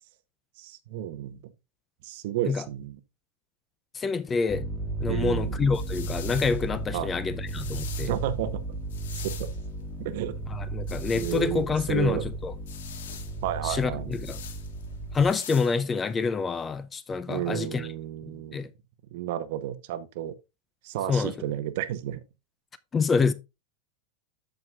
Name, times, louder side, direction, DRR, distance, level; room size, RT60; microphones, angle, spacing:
voice 1, 0.6-1.4 2.0-3.0 5.1-5.6 6.9-7.1 8.0-8.6 9.2-9.5 10.0-10.4 11.1-12.3 13.4-14.2 17.3-18.6 19.1-20.3 20.8-22.2, right 12 dB, 60° right, 0.9 m, -32 dB
voice 2, 3.9-4.7 5.0-8.1 10.5-12.5 13.6-14.4 15.1-17.9 18.3-18.7 21.1-21.3 22.9-23.3, left 5 dB, 15° left, 0.4 m, -27 dB
sound 1, 4.5-15.3, right 2 dB, ahead, 1.7 m, -34 dB
sound 2, 5.3-16.3, left 8 dB, 85° left, 1.4 m, -45 dB
13.5 x 4.7 x 2.4 m
supercardioid pair, 145°, 0 cm